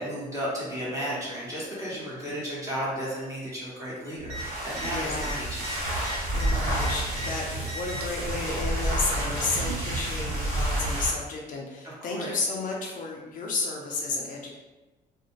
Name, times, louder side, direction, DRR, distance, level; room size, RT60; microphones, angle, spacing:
voice 1, 0.0-5.6 12.1-12.3, equal, 20° right, -8 dB, 1.1 m, -33 dB
sound 1, 4.2-11.2, right 1 dB, 60° right, 1.1 m, -29 dB
sound 2, 4.2-4.4 4.7-4.9 5.2-7.3 7.6-8.2 9.2-9.9 10.9-11.0, right 1 dB, 75° right, 0.5 m, -38 dB
voice 2, 4.8-5.5 6.3-14.5, left 3 dB, 50° left, -1 dB, 0.5 m, -32 dB
2.5 x 2.1 x 2.9 m, 1.1 s
cardioid pair, 110°, 17 cm